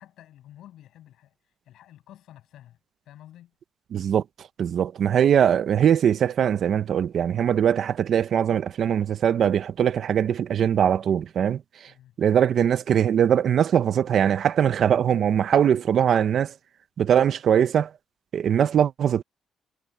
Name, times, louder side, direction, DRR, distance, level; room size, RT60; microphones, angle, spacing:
voice 1, 0.0-1.3 1.7-2.8 3.1-3.5 11.9-12.2, left 12 dB, 80° left, 7.5 m, -50 dB
voice 2, 3.9-4.2 4.6-11.6 12.2-16.5 17.0-17.9 18.3-19.2, right 9 dB, 55° right, 0.8 m, -21 dB
cardioid pair, 125°, 0 cm